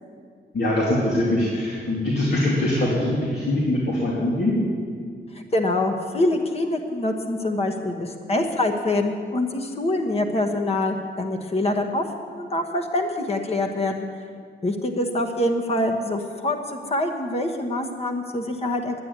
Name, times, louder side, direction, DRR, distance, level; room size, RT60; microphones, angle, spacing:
voice 1, 0.5-4.5, left 1 dB, 65° left, -5 dB, 2.7 m, -22 dB
voice 2, 5.3-12.0 12.3-14.1 14.6-18.9, left 1 dB, 35° left, 5 dB, 1.1 m, -25 dB
11.0 x 9.8 x 9.4 m, 2.1 s
wide cardioid pair, 165°, 19 cm